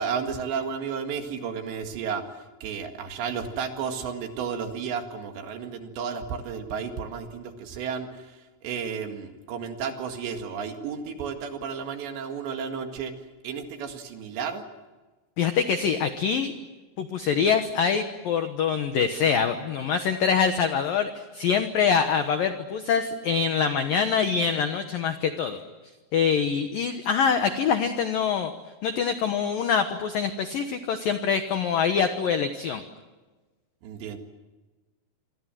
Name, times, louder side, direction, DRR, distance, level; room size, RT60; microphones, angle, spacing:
voice 1, 0.0-2.2 2.6-8.1 8.6-13.1 13.4-14.6 33.8-34.2, right 6 dB, 65° right, 5 dB, 3.9 m, -32 dB
voice 2, 15.4-16.5 17.0-25.6 26.1-28.5 28.8-32.8, left 6 dB, 85° left, 8 dB, 2.0 m, -24 dB
27.5 x 24.5 x 7.7 m, 1.2 s
omnidirectional pair, 5.9 m